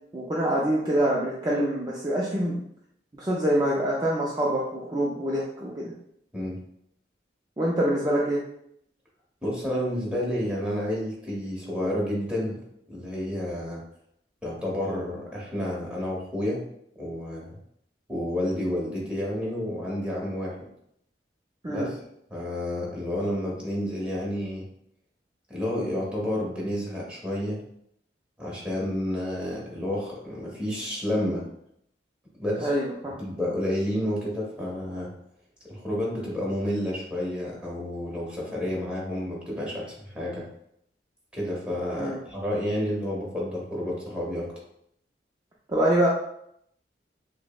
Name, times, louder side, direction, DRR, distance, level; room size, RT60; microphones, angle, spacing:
voice 1, 0.1-2.6 3.1-5.9 7.6-8.4 21.6-21.9 32.6-33.1 42.0-42.2 45.7-46.1, right 1 dB, 25° right, -5 dB, 0.4 m, -25 dB
voice 2, 9.4-12.6 12.9-13.8 14.4-16.6 16.9-17.6 18.1-20.6 21.7-22.0 22.3-24.6 25.5-27.6 28.4-31.4 32.4-32.7 33.1-35.1 35.7-40.4 41.3-44.5, left 1 dB, 5° right, -5 dB, 1.0 m, -30 dB
6.0 x 2.1 x 2.3 m, 0.73 s
head